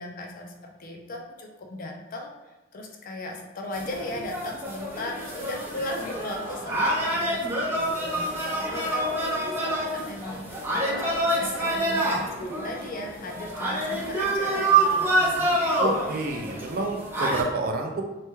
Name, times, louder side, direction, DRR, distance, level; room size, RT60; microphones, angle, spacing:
voice 1, 0.0-15.6, left 2 dB, 50° left, 1 dB, 0.4 m, -37 dB
sound 1, 3.7-17.4, right 2 dB, 10° right, 0.7 m, -27 dB
voice 2, 15.8-18.0, right 2 dB, 55° right, 3 dB, 0.4 m, -29 dB
3.1 x 2.2 x 3.0 m, 1.1 s
head